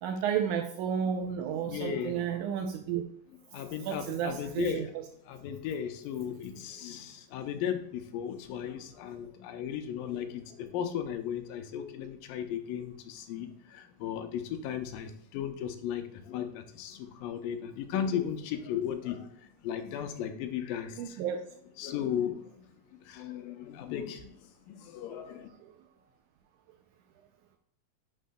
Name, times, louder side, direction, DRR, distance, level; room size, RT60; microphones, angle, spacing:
voice 1, 0.0-3.0 3.8-5.1 21.0-21.4 25.6-25.7, right 8 dB, 80° right, 4 dB, 1.8 m, -32 dB
voice 2, 1.6-2.2 3.5-4.9 5.3-21.2 21.8-22.7 23.0-24.4 24.7-25.5, left 9 dB, 85° left, 7 dB, 2.4 m, -36 dB
10.0 x 5.3 x 2.2 m, 0.70 s
omnidirectional pair, 3.9 m